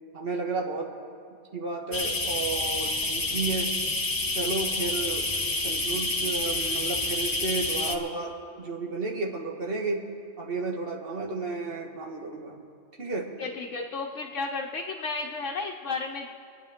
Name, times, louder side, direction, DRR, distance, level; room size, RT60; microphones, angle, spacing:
voice 1, 0.1-0.9 1.5-3.7 4.3-5.3 5.6-10.0 10.4-12.6 13.0-13.3, right 3 dB, 50° right, 0 dB, 1.7 m, -32 dB
sound 1, 1.9-8.0, left 2 dB, 20° left, 0.7 m, -28 dB
voice 2, 13.4-16.3, left 4 dB, 85° left, -1 dB, 1.2 m, -33 dB
26.0 x 9.7 x 3.6 m, 2.4 s
omnidirectional pair, 1.2 m